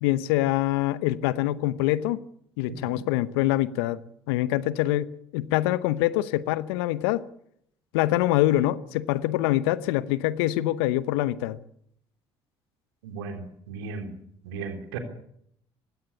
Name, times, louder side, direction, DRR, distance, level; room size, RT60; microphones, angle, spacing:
voice 1, 0.0-2.2 2.6-4.0 4.3-7.2 7.9-11.6, left 15 dB, 75° left, 0.9 m, -25 dB
voice 2, 13.0-14.2 14.4-15.0, right 4 dB, 80° right, 3.3 m, -36 dB
20.0 x 16.5 x 8.5 m
hypercardioid pair, 55°, 13 cm